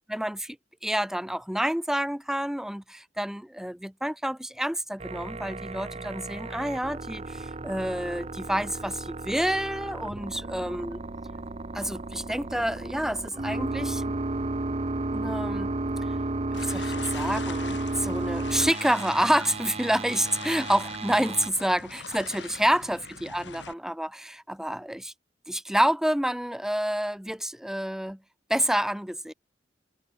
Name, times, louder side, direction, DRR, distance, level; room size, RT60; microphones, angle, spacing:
voice 1, 0.1-0.6 0.8-11.0 11.7-14.1 15.1-15.7 16.5-25.1 25.5-28.2 28.5-29.3, equal, 5° right, 0.7 m, -28 dB
sound 1, 5.0-21.5, right 2 dB, 35° right, 1.0 m, -33 dB
sound 2, 16.5-23.7, left 5 dB, 70° left, 3.4 m, -43 dB
head